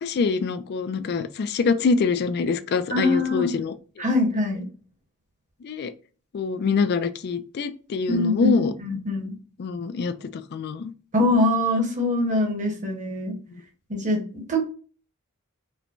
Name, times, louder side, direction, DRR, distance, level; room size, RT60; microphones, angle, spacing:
voice 1, 0.0-3.7 5.6-5.9 6.3-8.7 9.6-10.9 13.5-13.6, left 5 dB, 50° left, 10 dB, 0.3 m, -25 dB
voice 2, 2.9-3.5 4.0-4.7 8.1-9.3 11.1-13.4 13.9-14.7, left 1 dB, 35° right, 2 dB, 1.0 m, -23 dB
4.4 x 2.1 x 2.5 m, 0.39 s
head